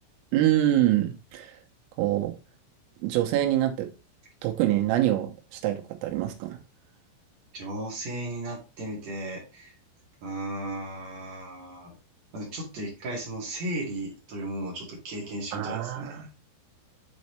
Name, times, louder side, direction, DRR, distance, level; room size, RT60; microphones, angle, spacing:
voice 1, 0.3-1.5 2.0-2.4 3.0-3.9 4.4-6.6 15.5-16.3, right 13 dB, 85° right, 3.6 m, -25 dB
voice 2, 7.5-9.7 10.2-12.0 12.3-16.2, right 1 dB, 45° right, 2.6 m, -35 dB
8.3 x 4.2 x 3.2 m
omnidirectional pair, 5.9 m